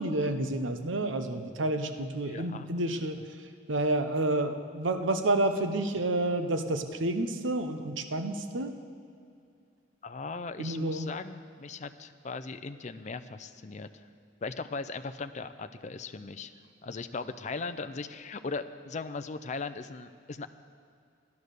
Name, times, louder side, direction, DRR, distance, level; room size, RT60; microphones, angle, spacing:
voice 1, 0.0-3.2 3.7-8.7 10.6-11.1, right 2 dB, 85° right, 8 dB, 0.9 m, -29 dB
voice 2, 2.2-2.7 10.0-14.1 14.4-16.5 16.8-20.5, left 4 dB, 40° left, 9 dB, 0.5 m, -38 dB
13.5 x 11.0 x 6.6 m, 2.4 s
head